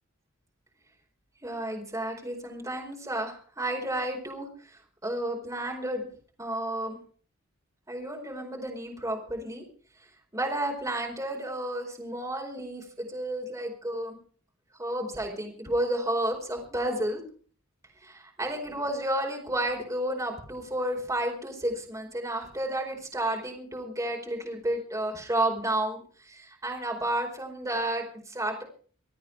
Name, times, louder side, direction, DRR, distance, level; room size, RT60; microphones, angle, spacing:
voice 1, 1.4-6.1 6.4-7.0 7.9-9.6 10.3-14.2 14.8-17.2 18.0-28.6, right 1 dB, 15° right, 1 dB, 4.7 m, -31 dB
26.0 x 9.4 x 4.8 m, 0.43 s
head